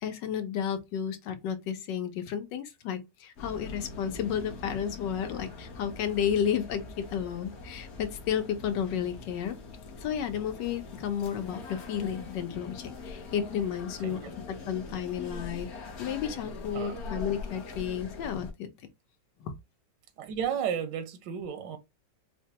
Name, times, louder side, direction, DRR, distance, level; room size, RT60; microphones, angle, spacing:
voice 1, 0.0-9.5 10.0-14.2 14.5-15.7 16.0-18.7 19.4-19.5, left 8 dB, 80° left, 1.4 m, -32 dB
sound 1, 3.3-18.5, left 3 dB, 55° left, 0.8 m, -43 dB
voice 2, 20.2-21.8, right 8 dB, 85° right, 1.3 m, -33 dB
4.8 x 2.2 x 2.8 m
omnidirectional pair, 1.9 m